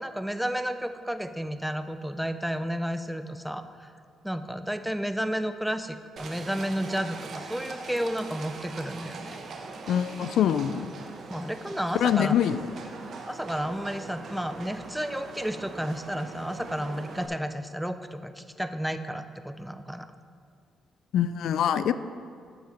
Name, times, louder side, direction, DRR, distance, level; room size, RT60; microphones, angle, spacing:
voice 1, 0.0-3.9 4.2-9.4 11.3-12.4 13.3-20.1, equal, ahead, 10 dB, 0.5 m, -32 dB
Livestock farm animals working animals, 6.2-17.3, right 4 dB, 60° right, 0.9 m, -41 dB
voice 2, 9.9-10.9 11.9-12.6 21.1-21.9, left 9 dB, 75° left, 13 dB, 0.3 m, -24 dB
9.3 x 6.9 x 4.3 m, 2.2 s
cardioid pair, 85°, 0 cm